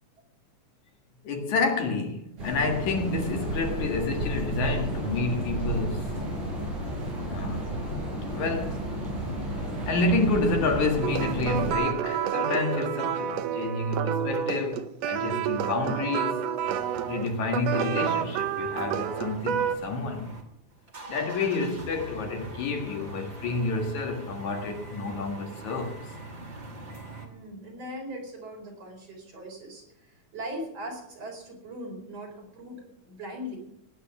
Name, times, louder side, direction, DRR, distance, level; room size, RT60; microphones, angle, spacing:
voice 1, 1.2-6.1 7.3-7.8 8.3-8.9 9.9-16.4 17.1-20.3 21.1-26.0, left 3 dB, 70° left, 3.2 m, -29 dB
sound 1, 2.4-11.8, right 1 dB, 85° right, 7.2 m, -32 dB
sound 2, 11.0-19.8, right 9 dB, 70° right, 1.7 m, -29 dB
sound 3, 16.6-20.4 20.7-27.3, right 2 dB, 30° right, 2.6 m, -43 dB
voice 2, 27.2-29.8 30.3-33.6, equal, 55° right, 5.2 m, -39 dB
18.5 x 9.8 x 6.1 m
omnidirectional pair, 3.5 m